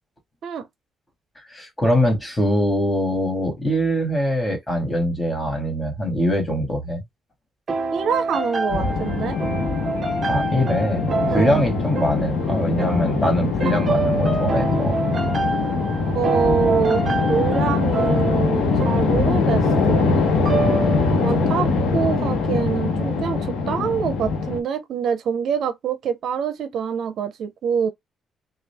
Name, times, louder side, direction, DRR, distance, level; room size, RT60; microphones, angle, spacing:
voice 1, 1.5-7.0 10.3-15.0 21.3-21.5 21.8-22.0, equal, 15° left, 2.0 m, -23 dB
sound 1, 7.7-21.4, right 3 dB, 40° right, 0.8 m, -27 dB
voice 2, 7.9-9.4 11.3-11.7 16.1-17.0 17.3-20.2 21.2-27.9, right 7 dB, 70° right, 0.6 m, -25 dB
sound 2, 8.7-24.6, left 4 dB, 85° left, 1.0 m, -22 dB
3.8 x 2.3 x 3.4 m
cardioid pair, 90°, 0 cm